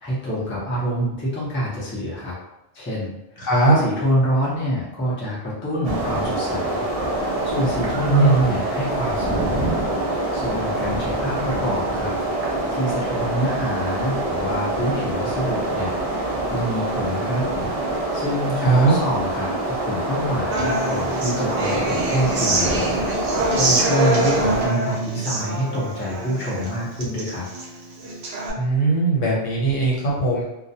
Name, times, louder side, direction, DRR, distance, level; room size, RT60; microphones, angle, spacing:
voice 1, 0.0-2.4 2.7-3.1 3.7-6.8 7.2-9.5 10.3-12.1 12.4-17.4 18.1-27.5, equal, 15° left, -7 dB, 0.4 m, -26 dB
voice 2, 3.4-3.8 8.1-8.6 18.6-18.9 28.6-30.4, right 3 dB, 80° left, -4 dB, 1.1 m, -19 dB
sound 1, 5.8-24.7, right 1 dB, 50° right, 0.4 m, -25 dB
Human voice / Acoustic guitar, 20.5-28.5, right 2 dB, 85° right, 1.0 m, -25 dB
2.2 x 2.1 x 2.7 m, 0.92 s
omnidirectional pair, 1.3 m